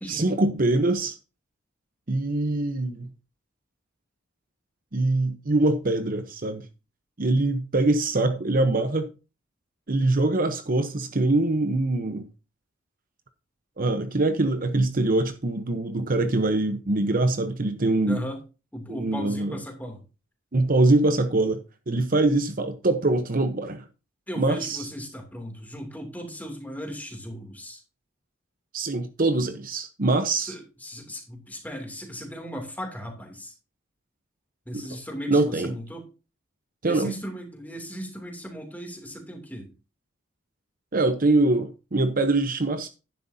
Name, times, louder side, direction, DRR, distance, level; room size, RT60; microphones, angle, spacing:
voice 1, 0.1-1.2 2.1-3.1 4.9-6.6 7.2-9.1 9.9-12.3 13.8-18.2 18.9-19.6 20.5-21.6 21.9-23.8 24.4-24.8 28.7-30.5 35.3-35.7 36.8-37.1 40.9-42.9, right 2 dB, 45° right, 0.9 m, -23 dB
voice 2, 18.0-18.4 18.7-20.0 24.3-27.8 30.4-33.5 34.7-36.0 36.8-39.7, equal, 10° left, 2.8 m, -37 dB
11.5 x 10.0 x 2.8 m
head